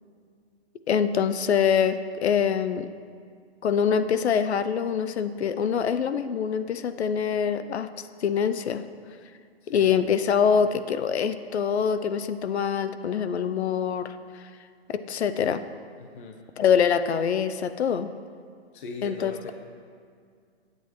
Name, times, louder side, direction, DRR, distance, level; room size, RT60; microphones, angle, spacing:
voice 1, 0.9-2.9 3.6-7.9 8.2-8.8 9.7-14.4 14.9-15.6 16.6-18.1 19.0-19.5, left 7 dB, 80° left, 11 dB, 0.7 m, -24 dB
voice 2, 16.0-16.4 18.7-19.5, left 3 dB, 50° left, 2 dB, 1.0 m, -39 dB
18.0 x 8.1 x 3.1 m, 2.2 s
hypercardioid pair, 160°, 32 cm